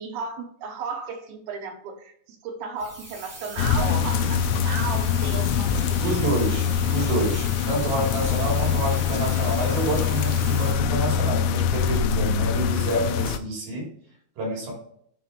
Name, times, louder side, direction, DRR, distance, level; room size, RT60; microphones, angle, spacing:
voice 1, 0.0-6.3, right 5 dB, 75° right, 3 dB, 2.4 m, -34 dB
sound 1, 2.8-10.7, right 2 dB, 30° right, 1.5 m, -40 dB
sound 2, 3.6-13.4, left 8 dB, 85° left, 2.9 m, -24 dB
voice 2, 6.0-13.9 14.4-14.7, right 2 dB, 60° right, -3 dB, 4.8 m, -28 dB
11.0 x 4.3 x 3.0 m, 0.66 s
omnidirectional pair, 5.1 m